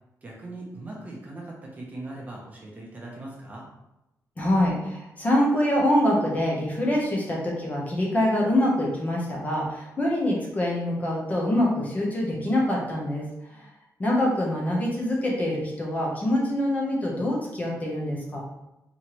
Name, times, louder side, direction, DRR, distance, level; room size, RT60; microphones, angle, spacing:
voice 1, 0.2-3.7, right 2 dB, 25° right, -3 dB, 0.8 m, -40 dB
voice 2, 4.4-13.3 13.5-13.7 14.0-18.4, left 1 dB, 25° left, -3 dB, 0.9 m, -25 dB
4.3 x 3.1 x 3.0 m, 0.91 s
wide cardioid pair, 170°, 6 cm